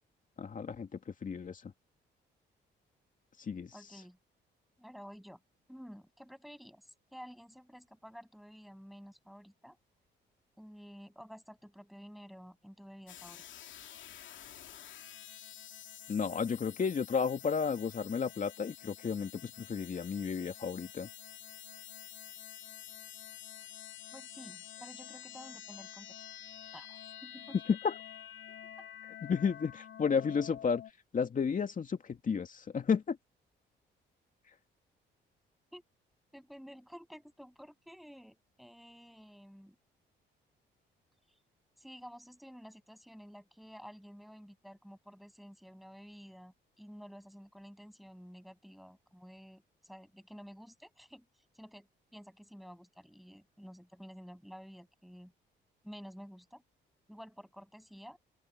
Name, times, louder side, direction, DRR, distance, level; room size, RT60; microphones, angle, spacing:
voice 1, 0.4-1.7 3.4-3.7 16.1-21.1 27.7-28.0 29.2-30.8 31.1-33.2, left 6 dB, 40° left, 2.5 m, -32 dB
voice 2, 3.7-4.2 4.8-5.4 5.7-9.8 10.6-13.4 24.1-26.1 26.7-27.6 28.5-28.9 35.7-35.8 36.3-39.8 41.3-41.4 41.8-51.3 51.5-55.3 55.8-56.6 57.1-58.2, equal, ahead, 7.8 m, -52 dB
sound 1, 13.1-30.9, left 10 dB, 70° left, 2.4 m, -49 dB
open air
cardioid pair, 90°, 20 cm